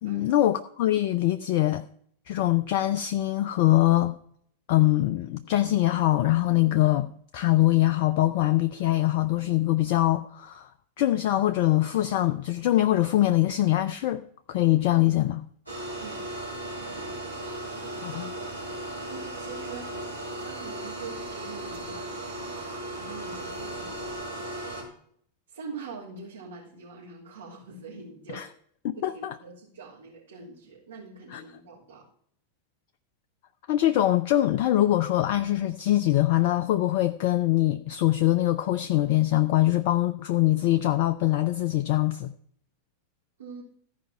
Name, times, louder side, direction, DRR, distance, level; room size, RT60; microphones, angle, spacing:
voice 1, 0.0-1.8 2.3-4.1 4.7-10.7 11.0-14.2 14.5-15.4 18.0-18.3 28.3-28.5 28.8-29.3 31.3-31.4 33.7-42.3, left 15 dB, 50° left, 0.5 m, -23 dB
sound 1, 15.7-24.8, right 1 dB, 85° right, 3.8 m, -36 dB
voice 2, 16.8-17.2 17.7-18.2 19.1-24.1 25.5-28.5 29.0-32.1 43.4-43.6, right 4 dB, 65° right, 3.5 m, -44 dB
14.5 x 5.2 x 5.7 m
figure-of-eight pair, 90°, 0 cm